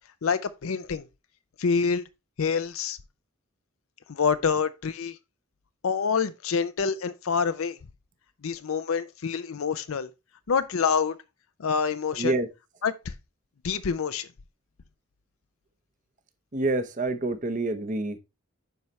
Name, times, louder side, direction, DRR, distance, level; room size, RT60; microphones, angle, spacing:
voice 1, 0.2-1.1 1.6-2.0 2.4-3.0 4.1-5.2 5.8-7.8 8.4-10.1 10.5-11.2 11.6-12.4 12.8-13.1 13.6-14.3, left 6 dB, 75° left, 0.5 m, -26 dB
voice 2, 12.2-12.5 16.5-18.2, right 2 dB, 35° right, 0.8 m, -27 dB
9.3 x 5.6 x 3.1 m
head